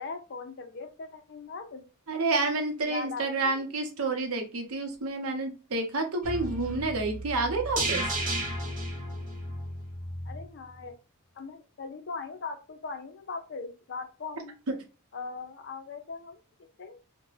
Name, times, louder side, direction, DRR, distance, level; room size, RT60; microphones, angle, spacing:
voice 1, 0.0-1.8 2.8-3.7 10.2-10.9 11.4-14.5 15.1-16.4 16.8-17.0, left 4 dB, 50° left, 6 dB, 0.5 m, -40 dB
voice 2, 2.1-8.1, right 3 dB, 75° right, 4 dB, 0.7 m, -29 dB
sound 1, 6.2-10.4 10.8-10.9, right 1 dB, 40° right, 0.8 m, -33 dB
2.4 x 2.1 x 3.1 m, 0.32 s
head